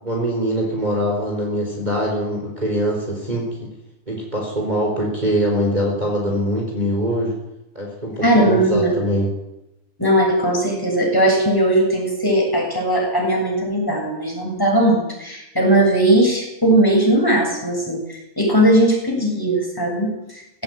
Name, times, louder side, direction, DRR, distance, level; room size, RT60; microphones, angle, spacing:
voice 1, 0.0-3.7 4.1-7.3 7.7-9.3, equal, 25° right, -1 dB, 4.5 m, -23 dB
voice 2, 8.2-8.9 10.0-20.6, right 1 dB, 15° left, -1 dB, 7.5 m, -18 dB
19.0 x 17.0 x 9.3 m, 0.90 s
omnidirectional pair, 1.7 m